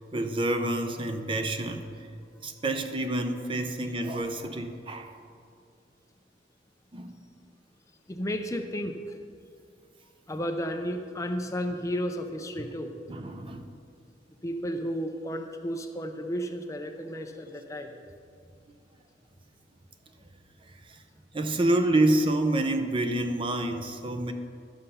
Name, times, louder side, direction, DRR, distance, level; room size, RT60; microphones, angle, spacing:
voice 1, 0.1-2.1 2.4-5.2 6.9-7.3 12.6-12.7 13.1-13.7 18.7-18.8 20.6-21.0 21.3-24.3, right 1 dB, 30° right, 6 dB, 0.6 m, -28 dB
voice 2, 8.1-9.2 10.3-12.9 14.4-17.9, equal, 20° left, 5 dB, 0.6 m, -33 dB
12.5 x 6.6 x 5.6 m, 2.4 s
head